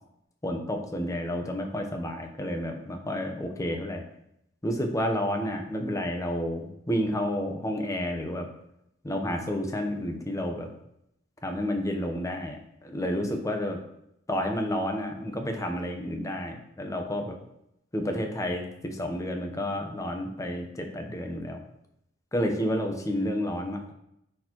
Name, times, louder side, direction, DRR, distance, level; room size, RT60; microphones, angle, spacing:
voice 1, 0.4-4.0 4.6-8.5 9.0-10.7 11.4-12.6 12.8-13.8 14.3-17.4 17.9-21.6 22.3-23.9, equal, 15° left, 4 dB, 0.8 m, -30 dB
9.7 x 4.4 x 3.0 m, 0.78 s
head